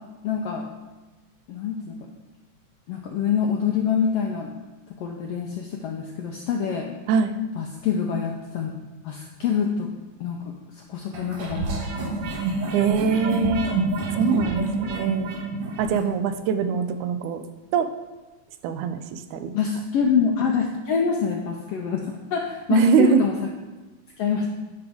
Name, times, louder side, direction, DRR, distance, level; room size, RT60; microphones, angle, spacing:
voice 1, 0.2-0.7 1.5-1.9 2.9-4.5 5.0-6.9 7.6-8.7 9.0-9.9 10.2-10.4 10.8-11.7 12.0-12.4 19.5-22.0 22.3-23.3 24.2-24.5, left 6 dB, 90° left, 1 dB, 1.3 m, -25 dB
sound 1, 11.1-16.1, right 3 dB, 60° right, 1.7 m, -28 dB
voice 2, 12.7-13.8 14.1-15.4 15.8-17.4 17.7-17.9 18.6-19.5 22.7-23.2, right 5 dB, 80° right, 9 dB, 2.0 m, -23 dB
10.5 x 5.3 x 3.5 m, 1.2 s
omnidirectional pair, 3.5 m